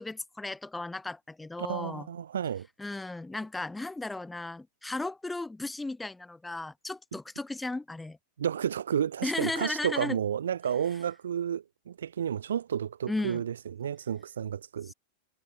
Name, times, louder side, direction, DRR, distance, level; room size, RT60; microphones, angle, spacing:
voice 1, 0.0-2.1 2.8-8.2 9.2-10.2 13.1-13.4 14.9-15.0, left 2 dB, 5° left, 3.6 m, -35 dB
voice 2, 1.6-2.7 8.4-14.9, right 9 dB, 65° right, 1.6 m, -31 dB
figure-of-eight pair, 90°, 0 cm